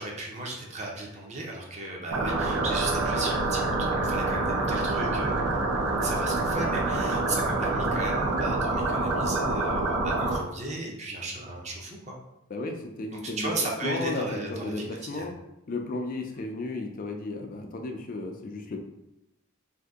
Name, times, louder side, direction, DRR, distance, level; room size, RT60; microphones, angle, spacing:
voice 1, 0.0-5.7 6.0-12.2 13.1-14.8 15.1-15.3, right 2 dB, 30° right, -1 dB, 0.6 m, -35 dB
sound 1, 2.1-10.4, right 2 dB, 85° right, 0.6 m, -26 dB
voice 2, 12.5-15.3 15.7-18.8, left 2 dB, 40° left, 3 dB, 0.4 m, -34 dB
2.6 x 2.6 x 3.5 m, 0.89 s
head